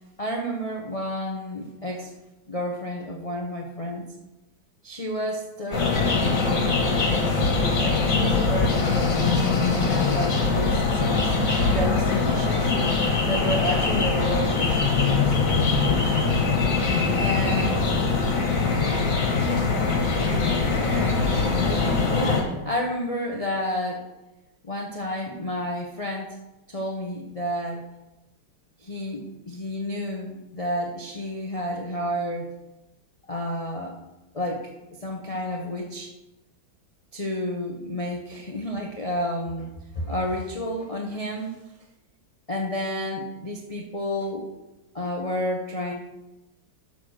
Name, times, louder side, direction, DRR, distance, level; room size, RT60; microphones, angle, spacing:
voice 1, 0.2-2.1 2.5-4.1 4.8-6.9 7.8-12.7 13.3-16.3 17.1-17.9 20.8-24.1 24.6-26.4 26.7-27.9 28.8-32.5 33.3-34.0 34.3-36.1 37.1-39.7 39.9-41.6 42.5-44.5 44.9-45.9, equal, 65° left, 0 dB, 0.3 m, -31 dB
sound 1, 5.7-22.4, left 4 dB, 45° left, 1.7 m, -22 dB
11.5 x 4.2 x 6.4 m, 1.0 s
omnidirectional pair, 2.2 m